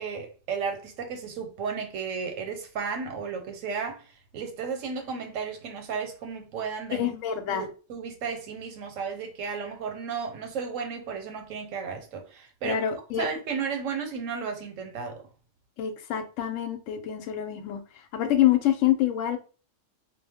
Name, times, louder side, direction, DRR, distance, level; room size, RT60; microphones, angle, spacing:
voice 1, 0.0-7.1 7.5-15.2, right 5 dB, 90° right, 1.0 m, -34 dB
voice 2, 6.9-7.7 12.6-13.3 15.8-17.8 18.1-19.4, left 11 dB, 85° left, 0.9 m, -26 dB
2.2 x 2.1 x 3.4 m
omnidirectional pair, 1.3 m